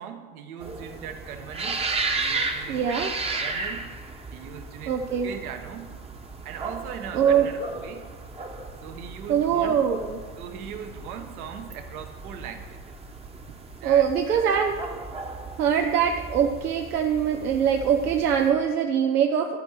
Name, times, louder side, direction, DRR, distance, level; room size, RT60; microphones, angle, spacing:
voice 1, 0.0-1.9 2.1-3.9 4.3-6.0 6.4-8.1 8.8-9.8 10.4-12.9 13.8-14.6, right 8 dB, 70° right, 6 dB, 1.4 m, -39 dB
sound 1, 0.6-18.5, right 3 dB, 15° right, 1.0 m, -35 dB
voice 2, 2.7-3.1 4.9-5.3 7.1-7.5 9.3-10.2 13.8-14.7 15.6-19.6, right 8 dB, 90° right, 3 dB, 0.8 m, -23 dB
12.0 x 4.6 x 7.4 m, 1.5 s
hypercardioid pair, 90°, 44 cm